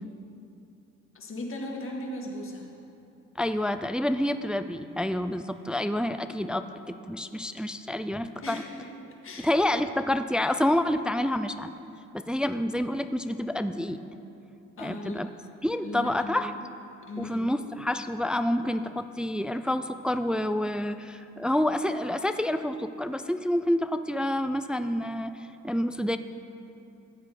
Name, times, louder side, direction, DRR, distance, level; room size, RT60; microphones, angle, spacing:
voice 1, 1.1-2.8 8.4-8.6 9.2-9.5 14.8-15.2 15.8-16.7 17.1-17.6, left 1 dB, 45° left, -1 dB, 1.9 m, -37 dB
voice 2, 3.4-8.6 9.4-11.7 12.1-14.0 14.8-15.3 15.6-16.5 17.2-25.4 25.6-26.2, left 1 dB, 5° right, 10 dB, 0.3 m, -28 dB
14.5 x 8.5 x 4.2 m, 2.7 s
cardioid pair, 90°, 30 cm